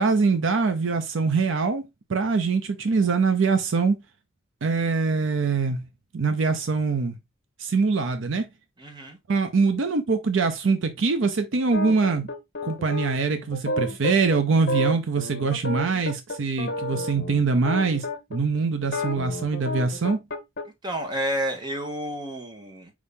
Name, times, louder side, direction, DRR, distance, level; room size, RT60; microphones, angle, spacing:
voice 1, 0.0-1.8 2.1-4.0 4.6-5.8 6.1-7.2 7.6-8.5 9.3-12.3 12.6-18.1 18.3-20.2, right 4 dB, 65° right, 0.5 m, -23 dB
voice 2, 8.8-9.2 20.8-22.9, equal, 20° right, 1.0 m, -30 dB
sound 1, 11.7-18.4 18.8-20.6, left 1 dB, 50° left, 0.8 m, -31 dB
4.8 x 2.7 x 3.4 m
head